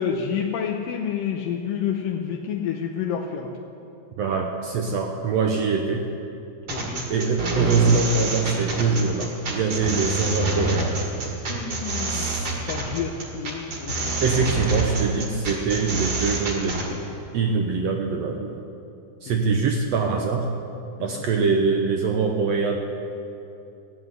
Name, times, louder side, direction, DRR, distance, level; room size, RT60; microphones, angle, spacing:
voice 1, 0.0-3.6 6.7-7.0 11.5-14.1 14.4-14.5 15.8-15.9 21.0-21.2, left 7 dB, 80° left, 1 dB, 2.4 m, -29 dB
voice 2, 4.2-6.1 7.1-11.0 12.1-12.5 14.2-17.0 17.3-18.6 19.2-20.5 21.0-22.8, right 4 dB, 80° right, 2 dB, 1.5 m, -23 dB
sound 1, 6.7-16.9, right 2 dB, 45° right, 2.6 m, -27 dB
15.0 x 7.9 x 9.6 m, 2.7 s
omnidirectional pair, 4.0 m